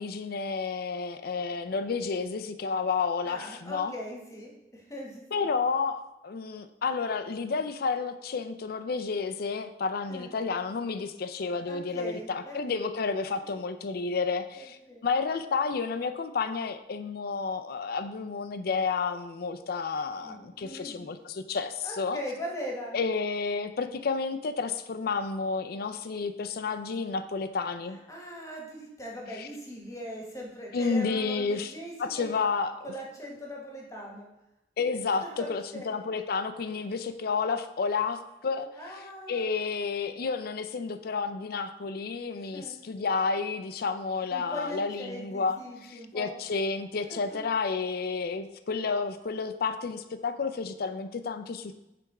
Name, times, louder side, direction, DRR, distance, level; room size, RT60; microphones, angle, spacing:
voice 1, 0.0-3.9 5.3-22.2 22.9-28.0 29.4-29.5 30.7-31.7 32.0-32.7 34.8-38.7 38.9-39.0 39.3-51.8, left 4 dB, 60° left, 10 dB, 0.4 m, -31 dB
voice 2, 3.2-5.5 10.1-10.3 11.7-12.8 14.5-15.1 20.2-21.1 21.8-22.9 28.1-32.4 32.8-34.3 35.2-36.0 38.7-39.5 42.5-42.8 44.3-46.4 47.1-47.4 51.7-51.8, equal, 20° left, -1 dB, 1.3 m, -40 dB
6.9 x 3.5 x 4.7 m, 0.91 s
head